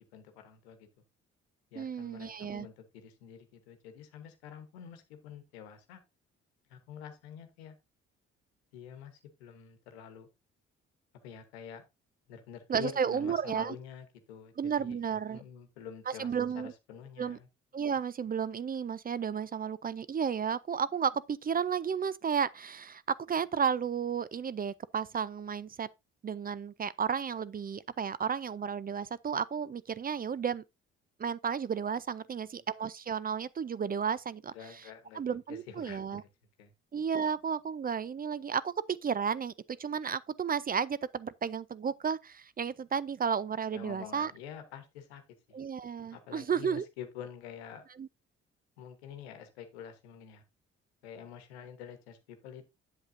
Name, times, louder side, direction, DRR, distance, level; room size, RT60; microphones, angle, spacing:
voice 1, 0.1-0.9 1.7-6.0 6.7-7.7 8.7-10.3 11.2-11.8 12.3-15.0 15.3-17.5 32.5-32.6 34.5-35.2 35.5-36.3 36.6-36.7 43.7-45.2 45.5-45.6 46.1-47.8 48.8-50.4 51.0-52.7, left 8 dB, 90° left, 1.1 m, -47 dB
voice 2, 1.8-2.7 12.7-13.7 14.6-15.4 16.1-16.7 17.2-17.4 17.7-25.9 26.2-30.6 31.2-34.5 35.1-36.2 36.9-44.3 45.5-46.9 48.0-48.1, right 7 dB, 30° right, 0.5 m, -33 dB
7.9 x 7.8 x 2.6 m
hypercardioid pair, 50°, 31 cm